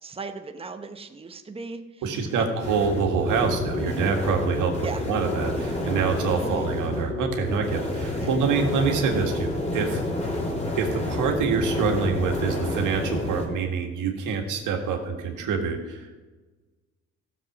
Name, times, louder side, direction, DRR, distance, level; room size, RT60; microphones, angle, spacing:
voice 1, 0.0-2.5 4.8-5.0 6.4-6.7 8.2-8.3, right 4 dB, 20° right, 7 dB, 0.9 m, -38 dB
voice 2, 2.0-10.0 10.8-16.1, right 5 dB, 85° right, 3 dB, 1.8 m, -26 dB
sound 1, 2.6-13.5, left 1 dB, 20° left, 3.2 m, -29 dB
14.5 x 7.3 x 6.0 m, 1.3 s
cardioid pair, 90°, 30 cm